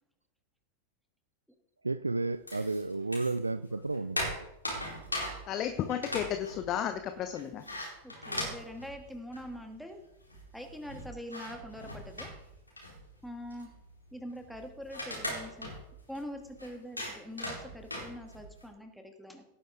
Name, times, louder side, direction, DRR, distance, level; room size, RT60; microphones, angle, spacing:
voice 1, 1.8-4.5, right 3 dB, 80° right, 14 dB, 0.4 m, -32 dB
sound 1, 2.5-3.5 3.8-9.7 10.0-10.1 10.2-18.6, left 1 dB, 85° left, 4.1 m, -40 dB
voice 2, 5.5-7.6, left 9 dB, 35° left, 8 dB, 1.0 m, -33 dB
voice 3, 8.0-10.0 10.5-12.3 13.2-13.7 14.1-15.7 16.1-19.4, equal, ahead, 4 dB, 2.1 m, -44 dB
17.5 x 9.8 x 3.8 m, 0.87 s
figure-of-eight pair, 90°, 0 cm